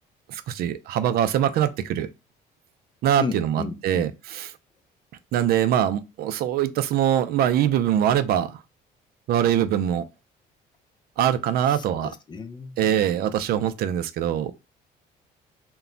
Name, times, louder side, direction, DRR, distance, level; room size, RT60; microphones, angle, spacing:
voice 1, 0.3-2.1 3.0-4.5 5.3-8.6 9.3-10.0 11.2-12.1 12.8-14.5, right 10 dB, 65° right, 0.4 m, -23 dB
voice 2, 3.2-4.1 11.7-12.9, left 4 dB, 25° left, 0.4 m, -34 dB
2.2 x 2.0 x 3.7 m
cardioid pair, 110°, 17 cm